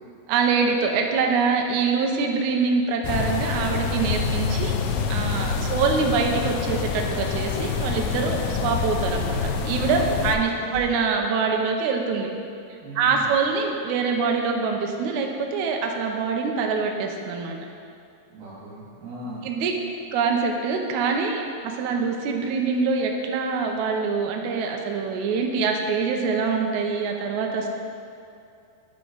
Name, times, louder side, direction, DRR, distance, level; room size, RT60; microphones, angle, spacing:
voice 1, 0.3-4.7 5.1-12.3 13.0-17.7 19.4-19.7 20.1-27.7, right 5 dB, 90° right, 2 dB, 1.7 m, -24 dB
sound 1, 3.0-10.4, left 6 dB, 80° left, 2.0 m, -26 dB
voice 2, 5.2-5.6 10.0-10.7 12.8-13.3 18.3-19.5, right 1 dB, 70° right, -6 dB, 4.2 m, -39 dB
sound 2, 10.0-10.2 10.4-10.9, left 2 dB, 65° left, 2.8 m, -41 dB
10.5 x 6.9 x 4.0 m, 2.5 s
omnidirectional pair, 4.4 m